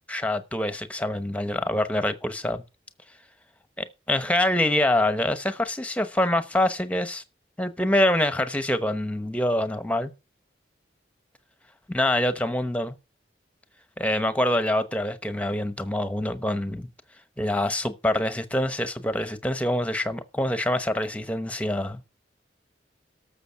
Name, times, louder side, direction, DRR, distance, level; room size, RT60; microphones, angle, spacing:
voice 1, 0.1-2.6 3.8-7.2 7.6-10.1 11.9-13.0 14.0-16.9 17.4-22.0, left 1 dB, 5° left, 0.9 m, -25 dB
12.5 x 7.0 x 5.7 m
head